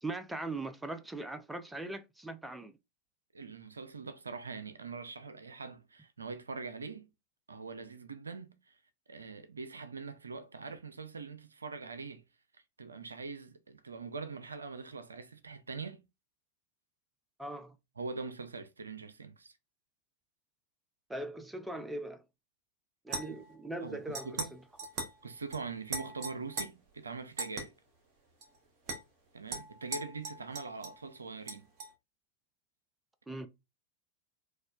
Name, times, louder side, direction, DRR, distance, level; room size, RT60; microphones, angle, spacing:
voice 1, 0.0-2.8 17.4-17.8 21.1-22.2 23.0-24.6 33.3-33.5, right 2 dB, 5° right, 0.4 m, -40 dB
voice 2, 3.3-7.1 7.5-8.8 9.1-12.2 12.8-16.0 18.0-19.5 23.8-24.5 25.2-27.7 29.3-31.7, right 4 dB, 75° right, 0.4 m, -43 dB
sound 1, 23.1-23.5 24.2-24.5 24.8-25.2 25.5-25.6 25.9-26.7 27.4-27.6 28.4-28.5 28.9-29.0 29.5-31.0 31.5-31.9, right 3 dB, 40° right, 1.0 m, -39 dB
4.1 x 2.3 x 2.3 m
figure-of-eight pair, 90°, 0 cm